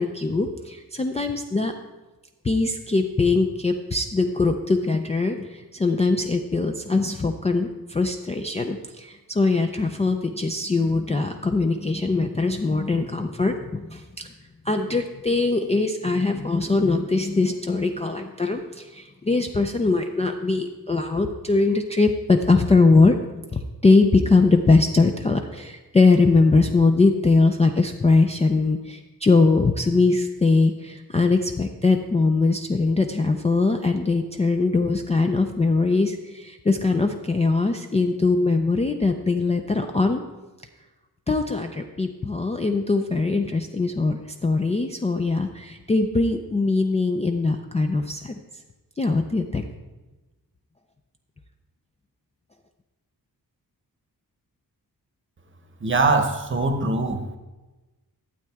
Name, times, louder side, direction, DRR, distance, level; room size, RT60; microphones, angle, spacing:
voice 1, 0.0-1.7 2.4-14.3 14.6-23.2 23.5-40.2 41.3-48.4 49.0-49.6, left 3 dB, 20° left, 4 dB, 0.3 m, -21 dB
voice 2, 55.8-57.4, right 3 dB, 35° right, 6 dB, 0.9 m, -22 dB
12.0 x 8.2 x 3.5 m, 1.1 s
wide cardioid pair, 180°, 37 cm